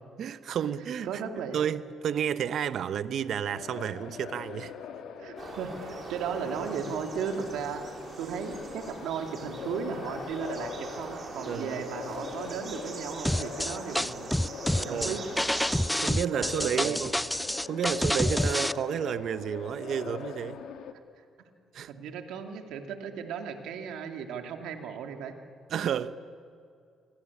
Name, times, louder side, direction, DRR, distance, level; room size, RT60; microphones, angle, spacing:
voice 1, 0.2-1.2 1.5-4.7 11.5-11.8 14.8-15.2 16.0-17.1 17.7-20.6 21.7-21.9 25.7-26.2, right 8 dB, 65° right, 1.0 m, -31 dB
voice 2, 1.0-1.6 5.2-7.8 8.2-14.3 14.8-15.2 16.1-17.0 21.9-25.3, right 7 dB, 90° right, 2.6 m, -36 dB
sound 1, 3.5-20.9, left 7 dB, 80° left, 2.0 m, -42 dB
sound 2, 5.4-15.9, right 3 dB, 45° right, 6.0 m, -42 dB
sound 3, 13.2-18.7, left 1 dB, 5° left, 0.6 m, -28 dB
28.0 x 24.0 x 8.6 m
cardioid pair, 90°, 0 cm